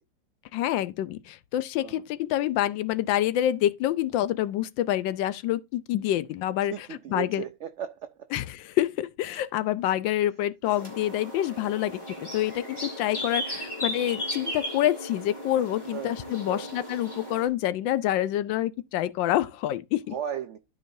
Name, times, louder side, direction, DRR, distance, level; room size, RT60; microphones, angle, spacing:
voice 1, 0.5-7.4 8.3-20.1, left 13 dB, 85° left, 1.3 m, -27 dB
voice 2, 6.7-8.1 15.9-16.1 16.5-16.7 20.1-20.6, right 9 dB, 90° right, 0.6 m, -35 dB
sound 1, 10.6-17.5, equal, 15° left, 3.2 m, -36 dB
12.5 x 5.2 x 2.6 m
omnidirectional pair, 2.0 m